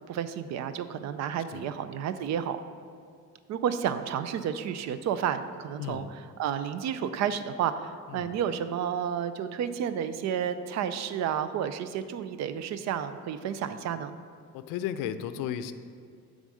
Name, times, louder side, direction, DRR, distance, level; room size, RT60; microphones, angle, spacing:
voice 1, 0.1-2.6 3.5-14.1, right 8 dB, 60° right, 11 dB, 0.5 m, -31 dB
voice 2, 14.5-15.7, left 10 dB, 85° left, 11 dB, 0.5 m, -34 dB
8.9 x 3.7 x 6.2 m, 2.2 s
cardioid pair, 155°, 31 cm